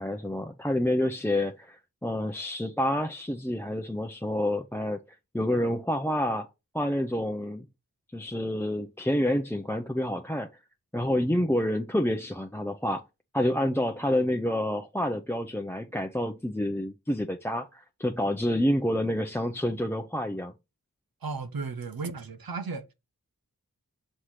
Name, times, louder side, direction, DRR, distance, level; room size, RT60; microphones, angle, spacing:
voice 1, 0.0-5.0 5.3-6.5 6.7-7.7 8.1-10.5 10.9-13.0 13.3-20.5, left 1 dB, 5° left, 0.6 m, -28 dB
voice 2, 21.2-22.9, right 4 dB, 80° right, 0.9 m, -34 dB
6.4 x 3.3 x 5.7 m
wide cardioid pair, 65°, 35 cm